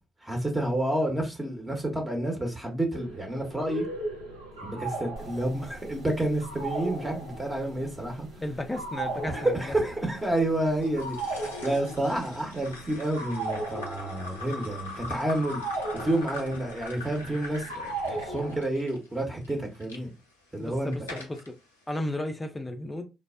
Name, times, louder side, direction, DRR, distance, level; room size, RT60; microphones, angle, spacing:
voice 1, 0.2-3.9 4.6-8.3 9.3-15.6 15.9-20.1 20.5-20.9, right 1 dB, 15° right, 0.8 m, -29 dB
sound 1, 2.9-18.6, right 2 dB, 85° right, 0.5 m, -38 dB
sound 2, 5.2-13.0, right 2 dB, 50° right, 0.7 m, -52 dB
voice 2, 8.4-9.6 18.5-18.6 20.6-21.5 21.9-23.1, left 1 dB, 15° left, 0.4 m, -34 dB
sound 3, 10.8-20.0 20.6-21.5, left 2 dB, 80° left, 0.4 m, -42 dB
3.2 x 2.0 x 2.3 m
figure-of-eight pair, 45°, 0 cm